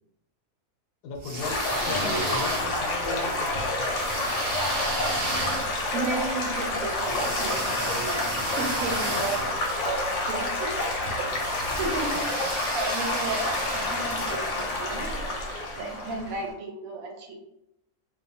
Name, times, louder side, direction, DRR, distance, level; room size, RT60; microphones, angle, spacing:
voice 1, 1.0-4.2 8.5-8.6 11.7-11.8, left 5 dB, 80° left, 2 dB, 1.1 m, -37 dB
sound 1, 1.1-3.0 3.8-10.2 11.3-14.4, right 2 dB, 45° right, 0.9 m, -34 dB
Stream / Gurgling / Trickle dribble, 1.4-16.5, left 2 dB, 60° left, 0.8 m, -29 dB
voice 2, 1.9-2.3 3.1-3.4 5.9-8.2 8.6-9.5 9.8-10.7 11.8-12.3 12.7-13.4 13.7-15.4 15.7-17.3, right 3 dB, 70° right, 1 dB, 0.9 m, -34 dB
2.8 x 2.2 x 2.6 m, 0.84 s
omnidirectional pair, 1.7 m